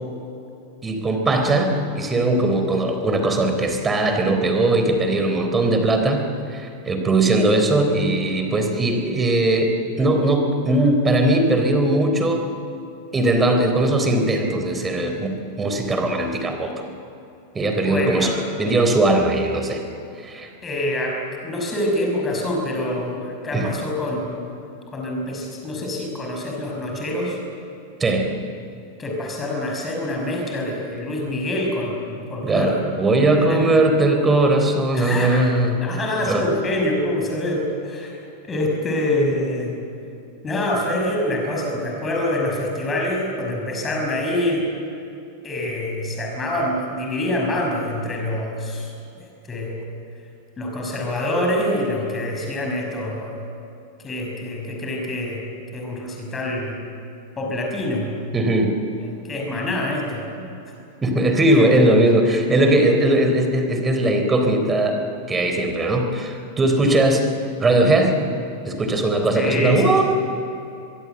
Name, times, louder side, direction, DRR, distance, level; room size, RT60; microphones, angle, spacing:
voice 1, 0.8-12.5 13.1-16.7 17.5-18.3 18.6-19.8 20.2-20.5 23.5-23.7 28.0-28.3 32.4-35.8 36.3-36.5 58.3-58.7 61.0-65.0 65.3-67.3 67.6-68.1 68.6-70.0, right 2 dB, 15° right, 5 dB, 3.7 m, -19 dB
voice 2, 17.8-18.3 20.6-21.2 21.4-24.5 24.9-27.4 29.0-32.8 33.3-33.8 34.9-38.2 38.4-39.8 40.4-44.6 45.4-49.9 50.6-53.4 54.0-55.4 55.7-56.8 57.4-58.1 59.0-60.5 62.3-62.4 69.4-70.0, left 1 dB, 20° left, 0 dB, 6.0 m, -26 dB
24.0 x 23.0 x 7.9 m, 2.7 s
figure-of-eight pair, 90°, 0 cm